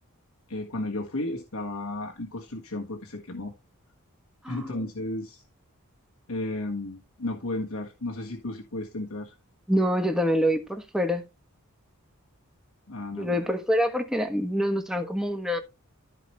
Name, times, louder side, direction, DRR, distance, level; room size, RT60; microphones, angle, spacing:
voice 1, 0.5-3.5 4.5-5.4 6.3-9.3 12.9-13.4, left 2 dB, 85° left, 1.5 m, -33 dB
voice 2, 4.4-4.8 9.7-11.2 13.1-15.6, equal, 5° right, 1.3 m, -26 dB
14.0 x 5.0 x 3.1 m
head